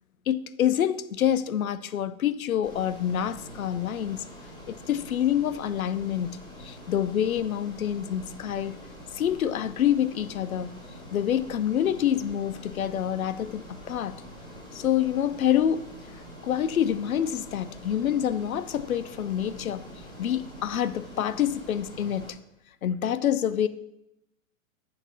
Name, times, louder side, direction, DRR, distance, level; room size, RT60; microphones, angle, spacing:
voice 1, 0.3-4.2 4.7-8.8 9.1-10.7 11.1-14.2 14.7-15.9 16.4-19.8 20.2-22.4 22.8-23.7, left 10 dB, 85° left, 0.7 m, -27 dB
Ocean, 2.6-22.3, equal, 10° left, 2.4 m, -45 dB
9.9 x 4.3 x 6.7 m
hypercardioid pair, 125°, 41 cm